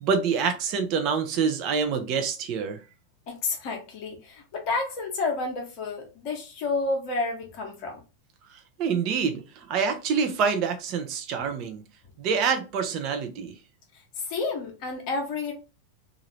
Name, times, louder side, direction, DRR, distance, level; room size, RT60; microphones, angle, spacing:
voice 1, 0.0-2.8 8.8-11.8 12.2-13.5, right 6 dB, 40° right, 0.6 m, -26 dB
voice 2, 3.3-8.0 13.9-15.5, left 3 dB, 45° left, 0.8 m, -30 dB
2.8 x 2.4 x 3.2 m
figure-of-eight pair, 90°, 0 cm